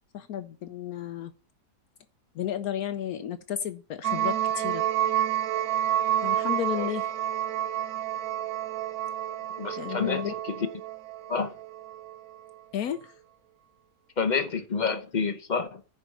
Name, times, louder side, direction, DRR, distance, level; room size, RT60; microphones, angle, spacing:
voice 1, 0.1-1.3 2.3-4.8 6.2-7.1 9.8-10.3 12.7-13.1, left 10 dB, 70° left, 1.0 m, -32 dB
sound 1, 4.0-12.2, right 11 dB, 65° right, 1.2 m, -29 dB
voice 2, 9.6-10.2 11.3-11.5 14.2-15.8, left 5 dB, 45° left, 0.6 m, -28 dB
10.0 x 4.7 x 6.6 m
omnidirectional pair, 1.8 m